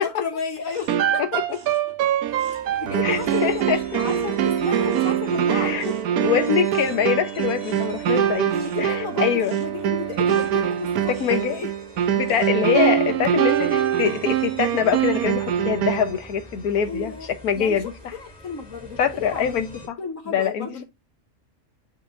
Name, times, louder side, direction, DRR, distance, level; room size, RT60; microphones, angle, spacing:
voice 1, 0.0-1.6 2.8-6.0 8.5-11.7 16.9-19.6 20.0-20.8, left 5 dB, 65° left, 1.5 m, -33 dB
sound 1, 0.6-3.7 4.0-12.8 13.3-13.7, right 2 dB, 60° right, 3.3 m, -50 dB
sound 2, 0.9-16.2, right 10 dB, 90° right, 1.2 m, -23 dB
voice 2, 1.2-1.6 3.0-3.8 5.5-5.8 6.2-8.5 8.8-9.6 11.1-11.6 12.1-17.1 17.4-17.8 19.0-20.0 20.3-20.8, left 8 dB, 85° left, 1.5 m, -24 dB
sound 3, 2.2-19.9, equal, 5° right, 3.0 m, -44 dB
9.0 x 5.3 x 2.5 m
omnidirectional pair, 1.5 m